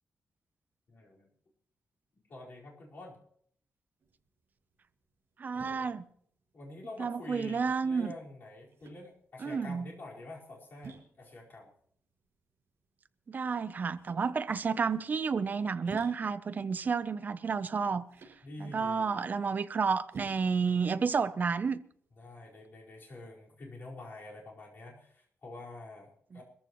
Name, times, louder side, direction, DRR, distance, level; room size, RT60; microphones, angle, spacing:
voice 1, 0.9-1.3 2.3-3.2 5.5-5.9 6.5-11.7 18.4-19.3 22.2-26.4, left 2 dB, 50° left, 4.8 m, -47 dB
sound 1, 4.0-22.6, right 5 dB, 65° right, 6.0 m, -53 dB
voice 2, 5.4-6.1 7.0-8.1 9.4-9.9 13.3-18.0 18.6-21.8, right 5 dB, 40° right, 0.7 m, -31 dB
22.5 x 14.5 x 3.1 m
wide cardioid pair, 125°, 5 cm